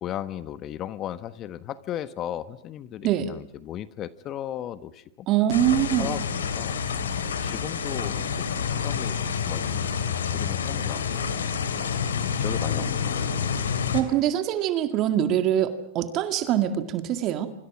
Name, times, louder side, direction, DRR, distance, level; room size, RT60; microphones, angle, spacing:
voice 1, 0.0-5.3 6.0-8.4 8.7-9.1 9.4-9.9 10.3-11.9 12.2-13.4, left 11 dB, 35° left, 14 dB, 1.2 m, -36 dB
voice 2, 5.3-6.2 13.9-17.5, right 11 dB, 40° right, 9 dB, 2.0 m, -24 dB
sound 1, 5.5-14.0, left 7 dB, 85° left, 3.1 m, -28 dB
26.5 x 25.5 x 6.2 m, 0.70 s
hypercardioid pair, 110°, 0 cm